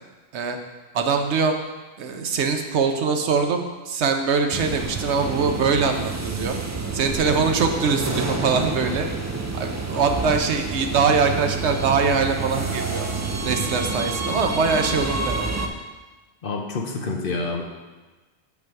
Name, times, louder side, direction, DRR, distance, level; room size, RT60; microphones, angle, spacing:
voice 1, 0.9-1.5 2.0-6.6 6.9-9.1 9.5-13.1 13.4-15.5, right 5 dB, 85° right, 5 dB, 1.1 m, -23 dB
sound 1, 4.5-15.7, right 4 dB, 30° right, 0.3 m, -28 dB
voice 2, 16.4-17.6, left 3 dB, 55° left, 2 dB, 1.0 m, -27 dB
7.6 x 5.4 x 4.7 m, 1.2 s
omnidirectional pair, 1.1 m